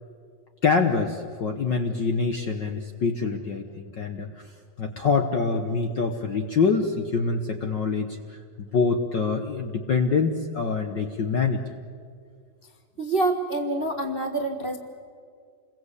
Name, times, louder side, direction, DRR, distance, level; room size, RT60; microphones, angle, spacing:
voice 1, 0.6-4.5 4.8-11.6, left 4 dB, 55° left, 4 dB, 1.3 m, -25 dB
voice 2, 13.0-14.8, right 2 dB, 30° right, 3 dB, 1.1 m, -26 dB
29.0 x 22.0 x 8.3 m, 2.1 s
omnidirectional pair, 3.4 m